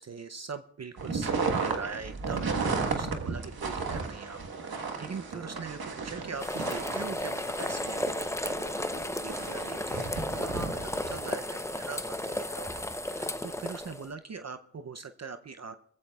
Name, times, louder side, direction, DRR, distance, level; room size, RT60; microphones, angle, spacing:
voice 1, 0.0-15.8, right 5 dB, 45° right, 9 dB, 0.6 m, -42 dB
sound 1, 1.0-11.3, right 4 dB, 80° right, 1.5 m, -34 dB
sound 2, 6.4-14.1, left 1 dB, 10° left, 0.7 m, -34 dB
23.5 x 15.0 x 2.3 m, 0.68 s
cardioid pair, 60°, 36 cm